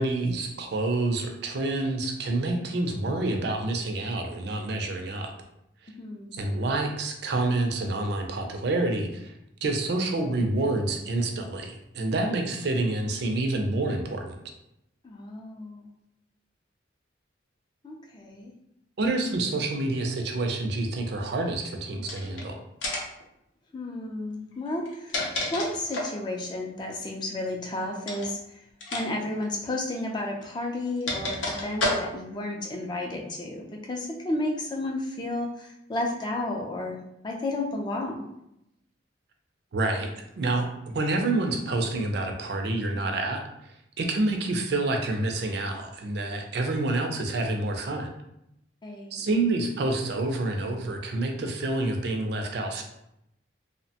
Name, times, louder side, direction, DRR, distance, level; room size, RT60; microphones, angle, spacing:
voice 1, 0.0-5.3 6.3-9.3 9.6-14.3 19.0-22.6 39.7-40.7 40.9-48.1 49.1-52.8, right 2 dB, 60° right, 4 dB, 0.4 m, -28 dB
voice 2, 6.0-6.4 15.0-15.9 17.8-18.5 23.7-25.2 25.5-28.6 28.9-37.0 37.2-38.2 48.8-49.2, left 2 dB, 25° left, 0 dB, 0.4 m, -32 dB
sound 1, 22.0-22.4 22.8-23.2 24.7-26.2 28.0-28.3 28.8-29.1 29.3-29.4 30.4-32.4, left 1 dB, 85° left, 0.6 m, -30 dB
2.8 x 2.1 x 2.7 m, 0.81 s
head